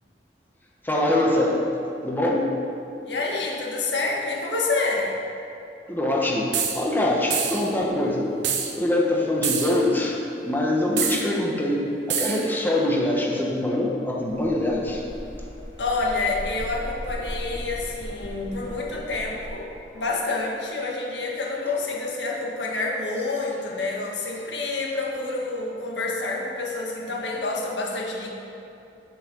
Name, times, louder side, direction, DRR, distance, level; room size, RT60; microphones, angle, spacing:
voice 1, 0.8-1.6 2.0-2.5 5.9-8.3 8.7-10.2 10.4-15.0, left 1 dB, 10° left, -2 dB, 1.2 m, -23 dB
voice 2, 3.1-5.1 15.8-28.3, left 3 dB, 80° left, -1 dB, 1.7 m, -28 dB
sound 1, 6.5-6.8 7.3-7.7 8.4-8.7 9.4-9.8 11.0-11.3 12.1-12.5, right 7 dB, 85° right, 1.1 m, -26 dB
sound 2, 14.3-19.5, equal, 30° left, 2.6 m, -37 dB
8.9 x 8.5 x 6.1 m, 2.8 s
head